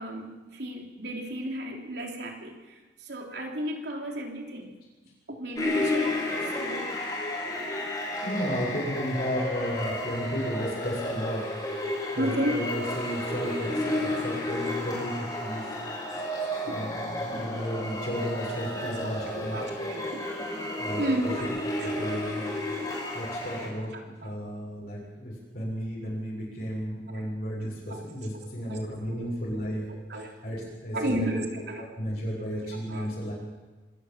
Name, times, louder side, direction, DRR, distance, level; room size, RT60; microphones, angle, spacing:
voice 1, 0.0-4.8 5.3-6.3 6.6-6.8 12.2-12.6 16.6-16.8 18.7-20.2 21.0-21.5 21.8-22.0 22.5-22.9 23.9-24.4 27.1-27.3 27.9-28.0 28.3-30.3 30.9-31.9 32.9-33.1, right 1 dB, 65° right, 2 dB, 3.4 m, -34 dB
sound 1, 5.5-23.7, left 1 dB, 20° left, 5.7 m, -32 dB
voice 2, 8.2-11.5 12.1-15.8 16.6-19.7 20.8-21.3 21.8-22.5 23.1-29.9 30.4-31.4 32.0-33.3, equal, 55° left, -4 dB, 7.1 m, -33 dB
25.5 x 13.5 x 7.5 m, 1.2 s
head